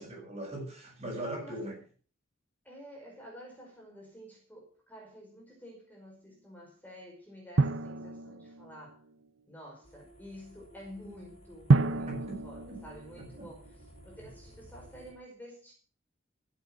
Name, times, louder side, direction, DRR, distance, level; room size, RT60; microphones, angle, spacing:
voice 1, 0.0-1.8 12.1-12.4 12.7-12.8 13.2-13.5, right 1 dB, 35° right, 0 dB, 7.3 m, -40 dB
voice 2, 2.6-9.0 9.4-12.1 12.4-13.6 14.0-15.7, equal, 10° left, -2 dB, 5.2 m, -50 dB
Drum, 7.6-9.1 11.7-13.9, right 3 dB, 75° right, 0.8 m, -29 dB
sound 1, 9.8-15.1, equal, 30° left, 5.7 m, -55 dB
15.5 x 8.6 x 6.3 m, 0.41 s
head